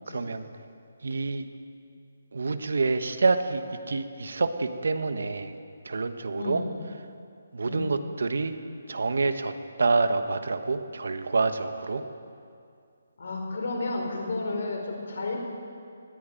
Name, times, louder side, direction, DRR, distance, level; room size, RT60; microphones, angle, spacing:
voice 1, 0.1-0.4 1.0-1.5 2.3-5.5 5.8-6.6 7.5-8.5 8.9-9.5 9.8-12.0, right 3 dB, 65° right, 9 dB, 1.3 m, -27 dB
voice 2, 6.3-6.7 7.6-8.0 13.2-15.4, left 3 dB, 50° left, 1 dB, 4.9 m, -32 dB
20.5 x 14.5 x 9.0 m, 2.4 s
hypercardioid pair, 180°, 0 cm